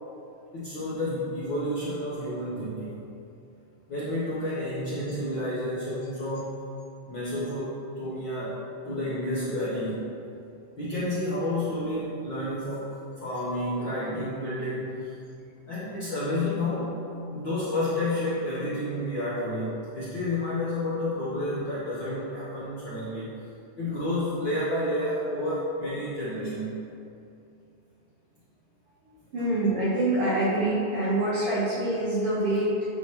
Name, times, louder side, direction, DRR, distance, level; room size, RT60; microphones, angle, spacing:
voice 1, 0.5-3.0 3.9-6.6 7.1-7.7 8.0-10.1 10.8-12.9 13.2-15.1 15.7-23.3 23.8-26.8, left 1 dB, 60° left, -11 dB, 1.2 m, -30 dB
voice 2, 29.3-32.7, right 1 dB, 65° right, -8 dB, 1.5 m, -25 dB
8.8 x 3.1 x 4.5 m, 2.6 s
omnidirectional pair, 3.7 m